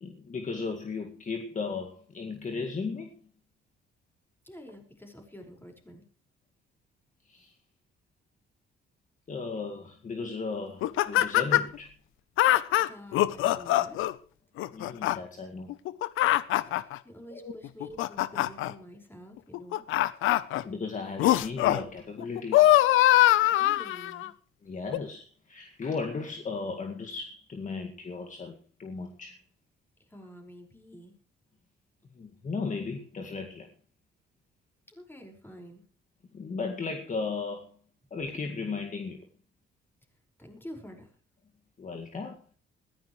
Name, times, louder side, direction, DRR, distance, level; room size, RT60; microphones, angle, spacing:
voice 1, 0.0-3.2 7.3-7.6 9.3-11.9 14.7-15.7 17.3-17.6 20.6-22.8 24.6-29.4 32.1-33.7 36.3-37.7 38.1-39.3 41.8-42.4, left 4 dB, 40° left, 2.0 m, -36 dB
voice 2, 4.4-6.1 12.9-14.0 16.6-19.8 23.4-24.3 30.0-31.1 34.9-35.8 40.4-41.1, equal, 10° left, 5.3 m, -48 dB
sound 1, 10.8-11.8 12.4-14.1 14.6-15.2 15.7-17.0 17.6-18.7 19.5-20.6 21.2-21.8 22.2-24.3 24.9-25.0, left 15 dB, 90° left, 0.8 m, -23 dB
20.5 x 15.0 x 3.2 m
cardioid pair, 90°, 20 cm